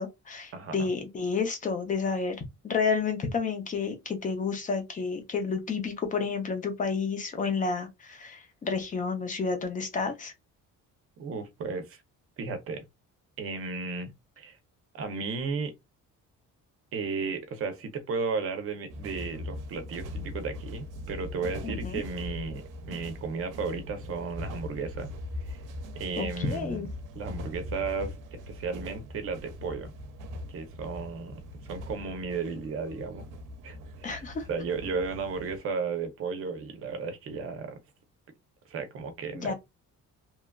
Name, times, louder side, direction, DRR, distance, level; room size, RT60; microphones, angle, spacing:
voice 1, 0.0-10.3 21.6-22.0 26.2-26.9 34.0-34.5 39.3-39.5, left 5 dB, 25° left, 0.5 m, -30 dB
voice 2, 0.5-0.9 11.2-12.0 12.4-12.8 13.4-14.1 14.4-14.6 14.9-15.7 16.9-22.6 22.9-25.1 25.4-25.6 25.9-26.9 27.2-29.9 30.5-33.2 33.6-34.2 34.5-37.8 38.7-39.5, right 4 dB, 45° right, 0.6 m, -34 dB
sound 1, 18.9-35.6, left 1 dB, 85° right, 0.7 m, -41 dB
3.0 x 2.3 x 2.2 m
cardioid pair, 175°, 31 cm